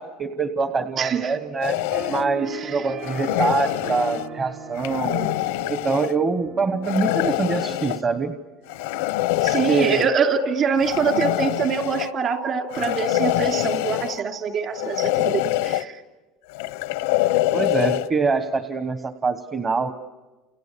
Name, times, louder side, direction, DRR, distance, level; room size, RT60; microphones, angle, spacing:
voice 1, 0.0-5.3 5.7-8.3 9.7-10.1 17.3-19.9, right 4 dB, 25° right, 8 dB, 1.2 m, -25 dB
voice 2, 1.0-1.3 2.6-2.8 9.4-15.9, right 6 dB, 40° right, 4 dB, 2.9 m, -24 dB
sound 1, 1.6-2.2 3.0-4.3 4.7-6.1 6.8-8.0 8.7-10.1 10.8-12.1 12.7-14.2 14.7-15.8 16.5-18.1, left 15 dB, 90° left, 0.8 m, -24 dB
sound 2, 1.9-8.8, right 3 dB, 65° right, 6.4 m, -39 dB
29.5 x 29.5 x 6.9 m, 1.2 s
cardioid pair, 135°, 0 cm